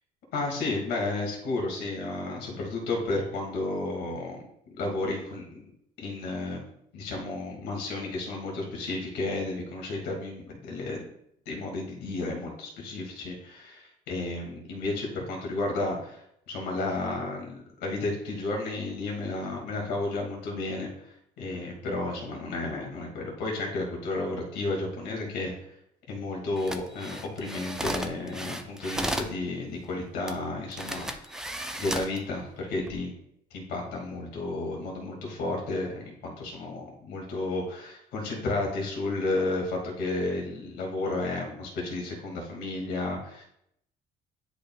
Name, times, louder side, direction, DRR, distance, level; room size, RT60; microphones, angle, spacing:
voice 1, 0.3-4.4 4.8-5.6 6.0-6.6 6.9-11.0 11.5-25.5 26.1-31.5 31.8-33.1 33.5-43.4, left 2 dB, 85° left, -1 dB, 2.1 m, -32 dB
sound 1, 26.6-29.4 30.3-30.4 30.7-32.2 32.7-33.0, right 1 dB, 5° right, 0.6 m, -34 dB
10.5 x 5.0 x 2.3 m, 0.74 s
cardioid pair, 110°, 17 cm